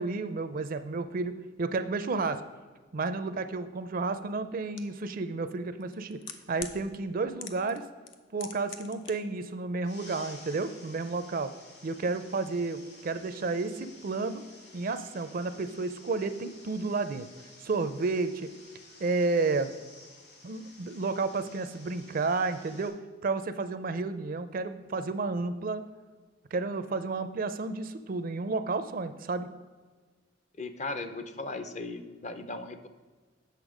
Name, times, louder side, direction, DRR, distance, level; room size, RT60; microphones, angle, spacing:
voice 1, 0.0-2.4 2.9-6.2 6.5-7.8 8.3-11.5 11.8-14.4 14.7-17.3 17.6-18.5 19.0-19.7 20.4-25.8 26.5-29.5, right 3 dB, 50° right, 11 dB, 0.5 m, -31 dB
sound 1, 4.8-4.9 5.8-6.8 7.4-7.8 8.1-9.1 9.4-9.5, left 8 dB, 80° left, 0.7 m, -41 dB
sound 2, 9.8-22.9, left 2 dB, 60° left, 2.3 m, -53 dB
voice 2, 30.6-32.9, left 2 dB, 40° left, 9 dB, 0.6 m, -37 dB
8.2 x 6.6 x 5.0 m, 1.4 s
head